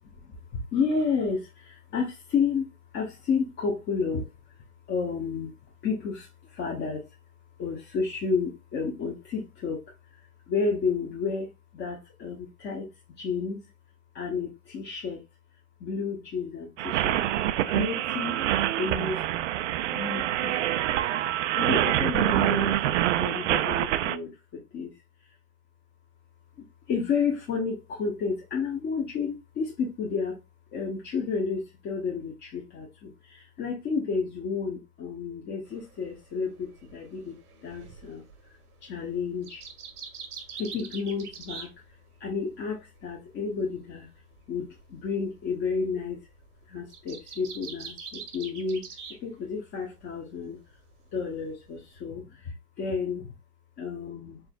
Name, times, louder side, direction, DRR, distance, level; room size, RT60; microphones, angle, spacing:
voice 1, 0.2-2.7 2.9-4.3 4.9-5.5 5.8-7.0 7.6-9.8 10.5-12.9 13.2-13.6 14.1-15.2 15.8-17.2 17.7-18.4 18.8-19.2 19.9-20.7 21.0-22.8 23.2-24.9 26.9-30.4 30.7-37.4 37.6-38.2 38.8-39.6 40.6-41.7 42.2-44.1 44.5-46.2 46.7-48.9 49.2-50.6 51.1-53.3 53.8-54.4, left 5 dB, 25° left, 0.9 m, -31 dB
sound 1, 16.8-24.2, right 12 dB, 55° right, 0.5 m, -26 dB
sound 2, 35.7-42.4 42.7-49.2 49.5-50.2 50.5-52.0, right 6 dB, 80° right, 1.2 m, -45 dB
4.7 x 3.4 x 2.3 m
hypercardioid pair, 120°, 44 cm